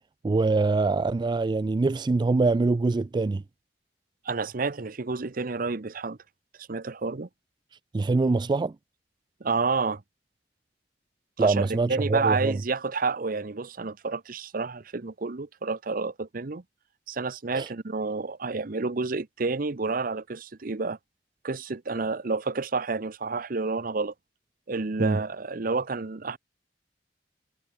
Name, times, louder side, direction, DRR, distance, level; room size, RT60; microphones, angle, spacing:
voice 1, 0.2-3.4 7.9-8.8 11.4-12.6 17.5-17.7 25.0-25.2, right 3 dB, 25° right, 0.3 m, -24 dB
voice 2, 4.2-6.2 6.6-7.3 9.4-10.0 11.4-16.6 17.1-21.0 21.4-24.1 24.7-26.4, right 4 dB, 50° right, 0.8 m, -29 dB
head